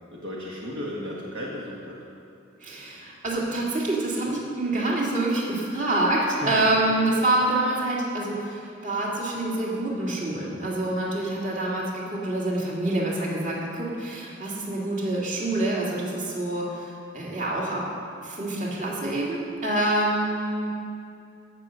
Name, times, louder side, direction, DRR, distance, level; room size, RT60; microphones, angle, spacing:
voice 1, 0.1-2.0 6.4-6.5, equal, 65° right, -4 dB, 1.7 m, -34 dB
voice 2, 2.6-17.8 18.2-20.7, right 1 dB, 40° right, -4 dB, 2.3 m, -26 dB
16.0 x 6.3 x 6.5 m, 2.5 s
head